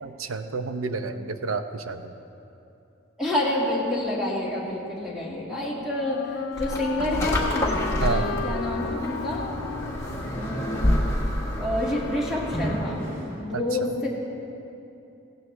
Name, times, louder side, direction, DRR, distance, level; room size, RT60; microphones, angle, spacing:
voice 1, 0.0-2.1 8.0-8.4 13.5-13.6, right 4 dB, 85° right, 8 dB, 0.7 m, -30 dB
voice 2, 3.2-9.6 10.1-13.1 13.4-14.1, left 1 dB, ahead, -6 dB, 2.2 m, -29 dB
Wind instrument woodwind instrument, 5.0-11.8, left 6 dB, 85° left, 0.5 m, -35 dB
sound 1, 6.6-12.9, left 1 dB, 15° left, 1.5 m, -28 dB
sound 2, 8.6-9.0 9.5-11.1 11.7-13.4, equal, 40° right, 2.6 m, -44 dB
17.0 x 16.5 x 3.4 m, 2.8 s
head